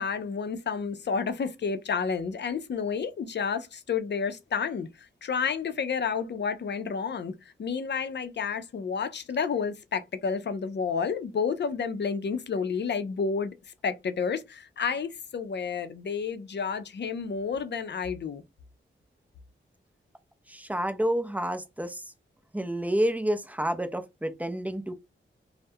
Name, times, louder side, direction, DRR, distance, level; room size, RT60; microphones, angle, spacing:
voice 1, 0.0-4.9 5.2-7.3 7.6-13.5 13.8-18.4, left 6 dB, 55° left, 0.5 m, -30 dB
voice 2, 20.5-22.0 22.5-24.9, right 1 dB, 5° right, 0.4 m, -29 dB
2.3 x 2.1 x 2.6 m
wide cardioid pair, 70°, 21 cm